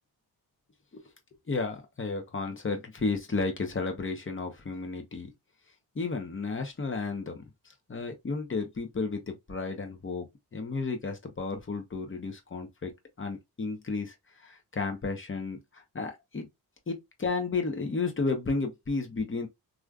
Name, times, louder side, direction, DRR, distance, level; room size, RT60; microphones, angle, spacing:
voice 1, 1.5-5.3 5.9-7.4 7.9-12.9 13.2-16.5 16.9-19.5, left 4 dB, 30° left, 1.1 m, -33 dB
3.0 x 2.5 x 2.3 m
cardioid pair, 70°, 39 cm